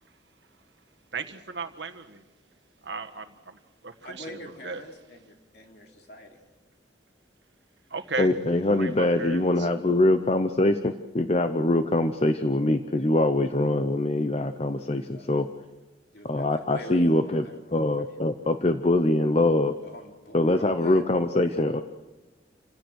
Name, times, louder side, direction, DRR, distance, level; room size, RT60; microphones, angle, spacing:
voice 1, 1.1-2.2 2.8-4.3 4.6-4.8 7.9-8.3 8.8-9.7, right 4 dB, 75° right, 1.6 m, -36 dB
voice 2, 4.0-6.4 15.1-15.3 16.1-18.3 19.8-21.8, left 1 dB, 60° left, 3.3 m, -45 dB
voice 3, 8.2-15.5 16.2-17.4 17.7-19.7 20.3-21.8, left 1 dB, 35° left, 0.8 m, -23 dB
29.0 x 16.5 x 6.4 m
head